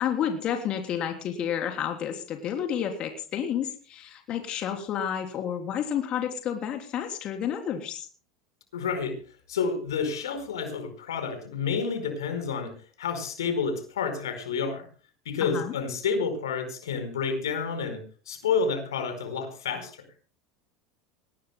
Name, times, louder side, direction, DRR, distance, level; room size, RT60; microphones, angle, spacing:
voice 1, 0.0-8.1 15.4-15.7, left 9 dB, 45° left, 4 dB, 3.3 m, -30 dB
voice 2, 8.7-9.2 9.5-14.8 15.2-19.9, left 5 dB, 85° left, 9 dB, 4.7 m, -29 dB
24.0 x 18.5 x 2.2 m, 0.40 s
hypercardioid pair, 85°, 2 cm